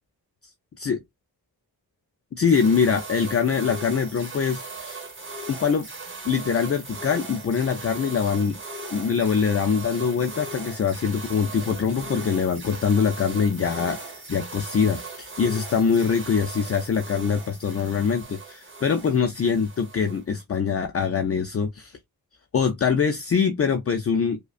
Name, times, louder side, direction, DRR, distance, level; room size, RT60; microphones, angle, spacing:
voice 1, 2.3-5.0 5.5-5.9 6.2-8.6 8.9-22.0 22.5-24.4, left 6 dB, 40° left, 0.4 m, -23 dB
sound 1, 2.4-20.4, right 3 dB, 35° right, 1.2 m, -38 dB
5.0 x 2.2 x 2.4 m
wide cardioid pair, 100°, 37 cm